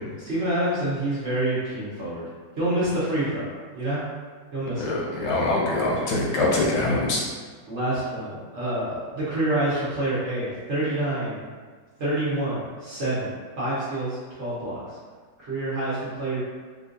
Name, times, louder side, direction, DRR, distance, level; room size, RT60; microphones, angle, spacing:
voice 1, 0.2-2.2 2.6-3.5 3.7-4.0 4.5-4.9 5.2-5.3 7.7-11.5 12.0-15.0 15.4-16.4, right 1 dB, 45° right, -10 dB, 1.1 m, -27 dB
voice 2, 4.8-7.2, left 2 dB, 75° left, -4 dB, 1.3 m, -23 dB
3.6 x 2.4 x 2.6 m, 1.5 s
omnidirectional pair, 1.9 m